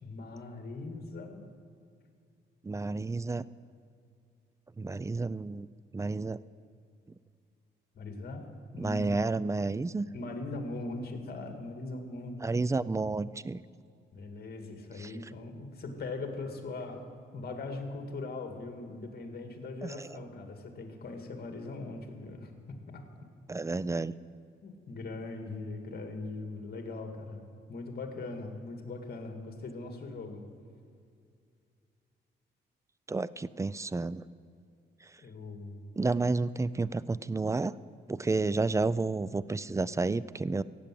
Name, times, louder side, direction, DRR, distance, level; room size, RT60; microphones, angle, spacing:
voice 1, 0.0-1.4 7.9-8.4 8.7-9.4 10.1-12.5 14.1-17.0 17.3-22.5 22.9-23.0 24.6-27.4 27.7-30.4 35.2-35.8, left 3 dB, 50° left, 4 dB, 2.0 m, -40 dB
voice 2, 2.6-3.4 4.8-5.7 5.9-6.4 8.7-10.1 12.4-13.6 15.0-15.1 19.8-20.2 23.5-24.1 33.1-34.2 36.0-37.7 38.1-40.6, right 3 dB, 15° right, 18 dB, 0.4 m, -31 dB
16.0 x 8.6 x 7.6 m, 2.3 s
cardioid pair, 80°, 20 cm